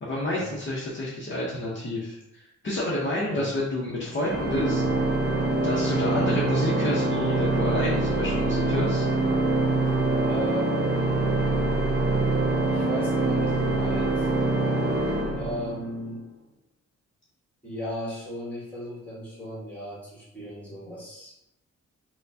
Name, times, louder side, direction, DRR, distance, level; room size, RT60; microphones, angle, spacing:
voice 1, 0.0-4.8 5.6-9.1, left 1 dB, 40° left, -6 dB, 0.8 m, -29 dB
Organ, 4.2-16.0, right 2 dB, 35° right, 0.5 m, -24 dB
voice 2, 6.0-6.3 10.3-11.5 12.7-14.3 15.3-16.3 17.6-21.3, equal, 5° left, -6 dB, 1.4 m, -36 dB
4.3 x 2.2 x 2.7 m, 0.83 s
wide cardioid pair, 125°, 30 cm